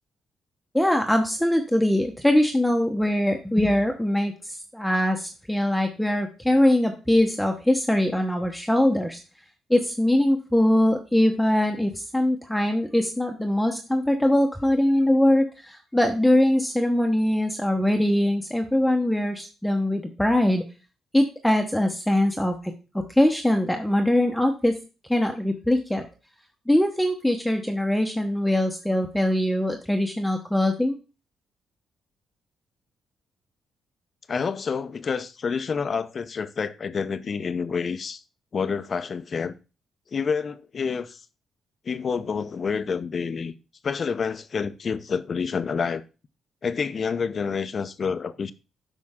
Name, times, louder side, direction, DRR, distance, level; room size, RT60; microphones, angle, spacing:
voice 1, 0.7-4.3 4.7-9.2 9.7-20.6 21.1-22.7 23.1-24.7 25.1-26.0 26.7-31.0, left 1 dB, 5° left, 1.0 m, -22 dB
voice 2, 34.3-38.2 38.5-39.5 40.1-41.2 41.8-43.5 43.8-46.0 46.6-48.5, left 5 dB, 45° left, 0.7 m, -28 dB
8.6 x 5.4 x 3.6 m
cardioid pair, 90°, 0 cm